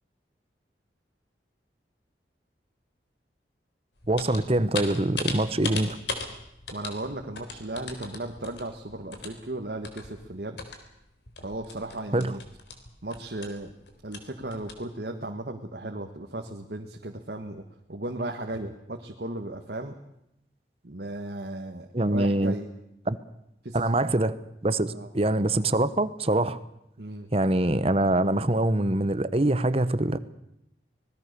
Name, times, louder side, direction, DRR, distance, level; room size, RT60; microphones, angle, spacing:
sound 1, 4.0-10.9 11.3-14.8, left 4 dB, 80° left, 3.7 m, -38 dB
voice 1, 4.1-6.0 12.1-12.3 21.9-22.5 23.1-23.2 23.7-24.4 24.6-26.6 27.3-30.2, right 1 dB, 35° right, 14 dB, 1.0 m, -24 dB
voice 2, 6.7-10.6 11.4-12.4 13.0-13.7 14.0-17.6 17.9-20.0 20.8-22.7 23.6-24.0 24.9-25.1 27.0-27.3, right 2 dB, 60° right, 4 dB, 1.6 m, -36 dB
25.5 x 19.5 x 6.8 m, 0.82 s
head